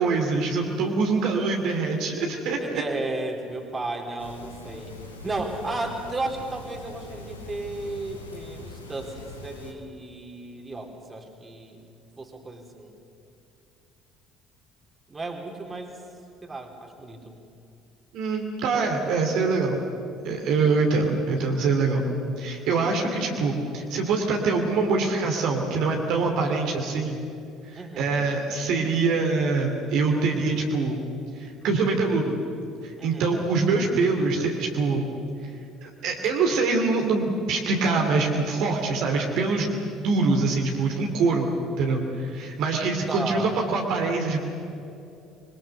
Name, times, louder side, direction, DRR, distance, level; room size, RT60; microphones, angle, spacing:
voice 1, 0.0-2.6 18.1-19.8 20.2-22.0 22.4-27.2 27.7-31.0 31.3-32.3 32.8-35.1 35.8-44.4, right 4 dB, 55° right, 1 dB, 2.6 m, -24 dB
voice 2, 2.6-5.0 5.2-11.8 12.2-12.9 15.1-16.0 16.4-17.3 27.8-28.3 33.0-33.3 38.6-39.2 43.1-43.5, right 2 dB, 25° right, 3 dB, 3.5 m, -34 dB
sound 1, 4.2-9.7, left 2 dB, 85° left, 2.1 m, -42 dB
25.5 x 22.5 x 6.8 m, 2.6 s
figure-of-eight pair, 55°, 0 cm